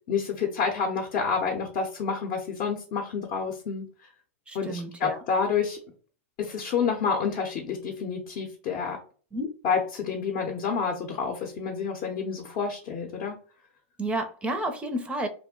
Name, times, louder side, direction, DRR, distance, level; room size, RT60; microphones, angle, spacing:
voice 1, 0.0-3.9 4.5-5.8 6.4-9.0 9.6-13.3, left 6 dB, 50° left, 0.7 m, -29 dB
voice 2, 4.5-5.2 9.3-9.5 14.0-15.3, right 1 dB, 15° right, 0.5 m, -31 dB
2.5 x 2.1 x 3.6 m
hypercardioid pair, 115°, 7 cm